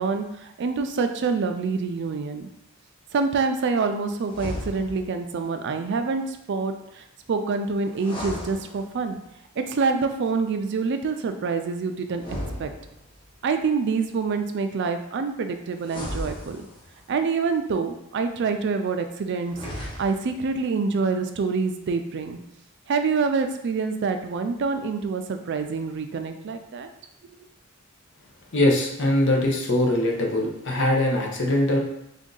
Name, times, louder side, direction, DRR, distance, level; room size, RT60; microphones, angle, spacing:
voice 1, 0.0-2.5 3.1-9.2 9.6-12.2 12.6-12.7 13.4-16.7 17.1-19.6 20.0-22.4 22.9-26.9, right 4 dB, 55° right, 7 dB, 0.4 m, -26 dB
sound 1, 4.2-5.2 7.9-9.2 12.1-13.3 15.8-17.1 19.4-20.4, equal, 25° left, 1.0 m, -35 dB
voice 2, 28.5-31.8, left 1 dB, 60° left, 0 dB, 0.8 m, -22 dB
3.5 x 2.6 x 3.8 m, 0.79 s
head